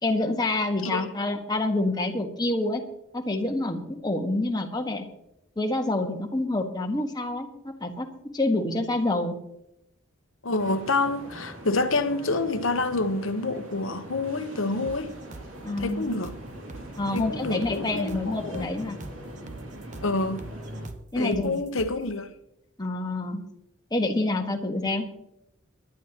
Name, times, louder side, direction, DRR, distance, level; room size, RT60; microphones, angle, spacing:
voice 1, 0.0-2.8 3.1-5.0 5.6-9.3 15.6-16.1 17.0-19.0 21.1-21.5 22.8-23.4 23.9-25.0, left 2 dB, 20° left, 1.4 m, -27 dB
voice 2, 10.4-15.1 15.8-16.3 17.1-18.7 20.0-20.4 21.2-22.3, left 3 dB, 70° left, 1.0 m, -28 dB
sound 1, 10.6-20.9, right 1 dB, 70° right, 2.7 m, -41 dB
sound 2, 14.9-22.1, right 2 dB, 35° right, 0.8 m, -44 dB
23.0 x 11.0 x 3.0 m
head